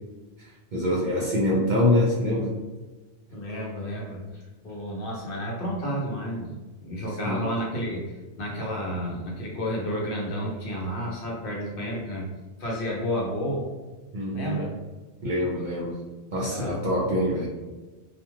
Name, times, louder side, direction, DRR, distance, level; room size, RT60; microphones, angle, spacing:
voice 1, 0.4-2.6 7.2-7.4 14.1-14.6 15.2-15.9 16.3-17.5, left 1 dB, 60° right, -5 dB, 0.5 m, -25 dB
voice 2, 3.3-6.5 6.8-12.3 12.6-13.7 14.3-14.7 16.3-16.8, equal, 55° left, -3 dB, 0.7 m, -31 dB
2.4 x 2.2 x 3.0 m, 1.2 s
omnidirectional pair, 1.2 m